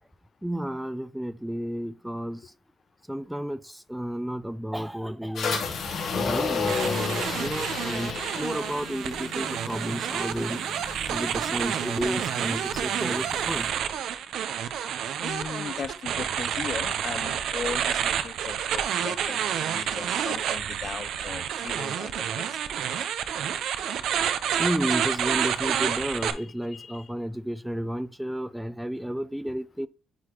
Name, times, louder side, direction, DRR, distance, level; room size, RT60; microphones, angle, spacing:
voice 1, 0.4-2.5 3.1-5.6 6.1-10.6 11.1-13.7 24.6-29.9, equal, 5° right, 0.5 m, -32 dB
sound 1, 5.4-13.7, left 5 dB, 70° left, 1.9 m, -33 dB
sound 2, 6.7-26.3, right 9 dB, 75° right, 0.6 m, -29 dB
voice 2, 15.2-22.8 26.4-27.1, left 6 dB, 50° left, 0.5 m, -38 dB
9.6 x 4.1 x 2.9 m
cardioid pair, 90°, 0 cm